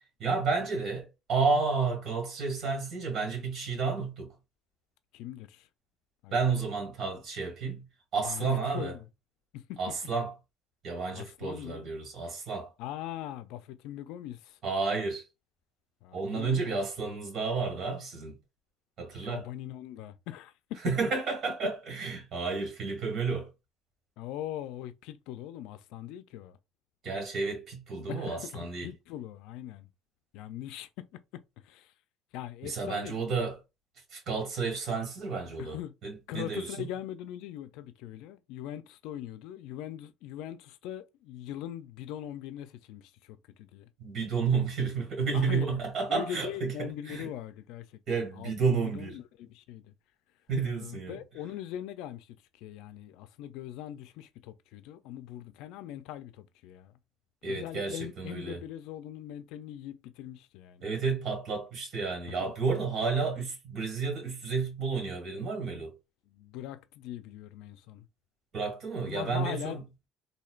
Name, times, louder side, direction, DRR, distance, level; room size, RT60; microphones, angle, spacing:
voice 1, 0.2-4.3 6.3-7.8 8.1-8.9 9.8-10.3 10.8-12.7 14.6-15.3 16.1-18.4 19.0-19.4 20.8-23.5 27.0-28.9 32.6-33.6 34.1-36.9 44.0-47.3 48.1-49.2 50.5-51.2 57.4-58.6 60.8-65.9 68.5-69.8, right 4 dB, 50° right, 2.0 m, -31 dB
voice 2, 5.1-5.7 6.2-6.5 8.2-9.0 9.5-9.8 11.1-11.9 12.8-14.6 16.0-16.8 19.1-20.8 24.2-26.6 28.1-29.9 30.3-31.9 32.3-33.2 35.6-35.9 36.3-43.9 45.3-49.9 50.6-56.9 57.4-60.8 62.4-62.5 66.3-68.1 69.1-69.9, left 12 dB, 80° left, 0.4 m, -41 dB
4.4 x 2.7 x 2.4 m
cardioid pair, 115°, 0 cm